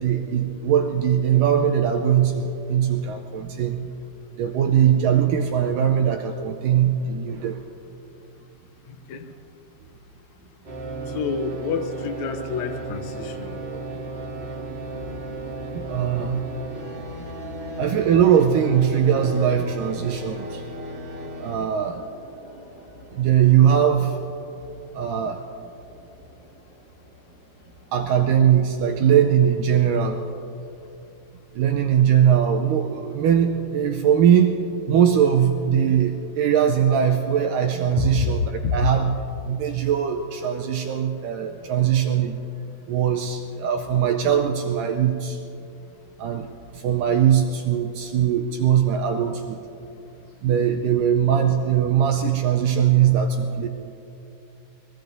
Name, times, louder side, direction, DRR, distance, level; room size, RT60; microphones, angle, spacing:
voice 1, 0.0-3.9 4.4-7.6 13.6-13.8 15.8-16.4 17.8-20.6 21.4-22.0 23.1-24.2 24.9-25.4 27.9-30.2 31.6-34.6 34.9-38.4 38.7-39.1 39.5-42.4 42.9-45.4 46.2-49.6 50.4-53.7, right 9 dB, 80° right, 4 dB, 2.0 m, -20 dB
voice 2, 8.9-9.3 11.1-13.6 38.0-38.3 38.6-38.8, left 5 dB, 80° left, 7 dB, 1.6 m, -28 dB
sound 1, 10.6-28.9, right 2 dB, 45° right, 0.8 m, -36 dB
23.5 x 21.0 x 2.7 m, 2.8 s
omnidirectional pair, 4.4 m